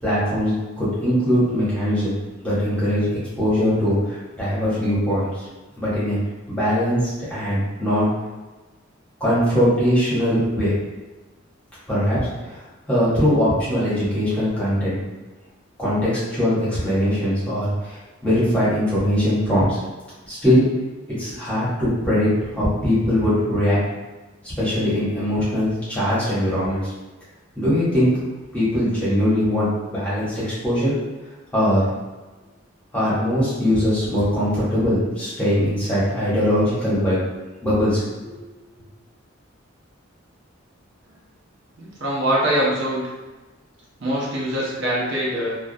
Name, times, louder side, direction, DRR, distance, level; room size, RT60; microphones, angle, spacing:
voice 1, 0.0-2.1 2.4-3.1 3.4-5.3 5.8-6.2 6.5-8.1 9.2-10.8 11.9-12.6 12.9-15.0 15.8-18.0 18.2-19.8 20.3-20.6 21.2-23.8 24.4-26.9 27.5-28.1 28.5-30.9 31.5-31.9 32.9-37.2 37.6-38.3, equal, 5° left, -11 dB, 0.9 m, -21 dB
voice 2, 41.8-43.0 44.0-45.5, right 1 dB, 60° right, -6 dB, 0.6 m, -23 dB
2.3 x 2.1 x 2.6 m, 1.2 s
head